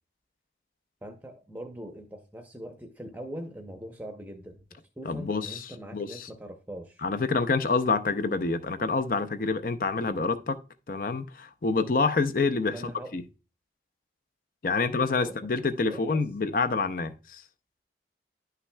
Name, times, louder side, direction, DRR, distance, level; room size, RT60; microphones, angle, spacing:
voice 1, 1.0-7.0 12.7-13.1 14.7-15.5 15.8-16.2, right 1 dB, 10° right, 0.7 m, -42 dB
voice 2, 5.1-5.6 5.9-6.1 7.0-10.6 10.9-12.7 13.1-13.2 14.6-17.4, left 4 dB, 50° left, 0.5 m, -27 dB
11.0 x 5.8 x 2.2 m
head